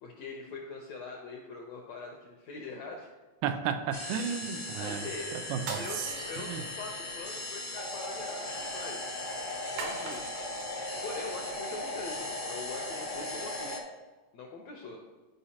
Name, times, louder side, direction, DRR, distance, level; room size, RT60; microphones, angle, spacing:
voice 1, 0.0-3.1 4.8-5.4 5.7-9.1 9.3-10.3 11.0-13.8 14.3-15.0, left 3 dB, 80° left, 1 dB, 1.5 m, -43 dB
voice 2, 3.4-5.0 5.5-6.1 6.4-6.6, right 7 dB, 90° right, 7 dB, 2.3 m, -33 dB
sound 1, 3.9-13.8, left 2 dB, 55° left, 0.6 m, -37 dB
sound 2, 5.6-7.1 9.8-10.7, right 4 dB, 65° right, 2.0 m, -41 dB
11.5 x 5.1 x 2.8 m, 1.2 s
omnidirectional pair, 3.8 m